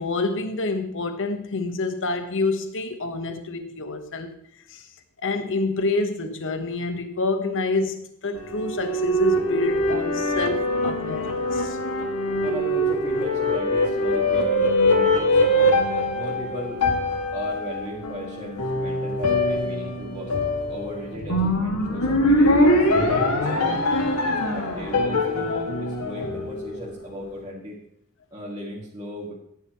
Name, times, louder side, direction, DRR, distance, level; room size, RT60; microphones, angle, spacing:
voice 1, 0.0-4.4 4.7-4.9 5.2-11.8, left 3 dB, 60° left, 7 dB, 1.3 m, -27 dB
sound 1, 8.4-26.9, left 1 dB, 85° left, 2.1 m, -23 dB
voice 2, 12.4-15.7 16.1-16.8 17.3-20.3 20.7-23.8 24.2-27.8 28.3-29.3, equal, 20° right, -7 dB, 2.3 m, -36 dB
15.0 x 10.5 x 3.1 m, 0.72 s
head